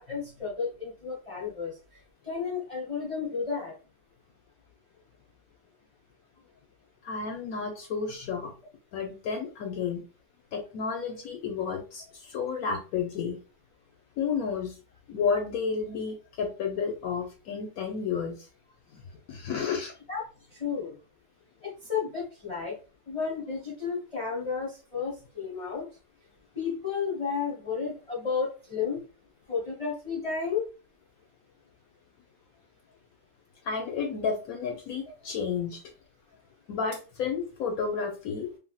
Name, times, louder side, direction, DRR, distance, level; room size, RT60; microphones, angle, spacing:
voice 1, 0.0-1.7 2.3-3.7 20.1-20.2 20.6-20.9 21.6-22.8 23.1-25.9 26.6-29.0 29.5-30.6, left 5 dB, 25° left, -6 dB, 0.8 m, -32 dB
voice 2, 7.0-8.5 8.9-10.0 10.5-13.4 14.2-14.7 15.1-18.4 18.9-19.0 19.3-19.9 33.7-35.8 36.7-38.5, left 6 dB, 70° left, 3 dB, 0.9 m, -31 dB
3.3 x 2.5 x 2.2 m, 0.34 s
omnidirectional pair, 1.8 m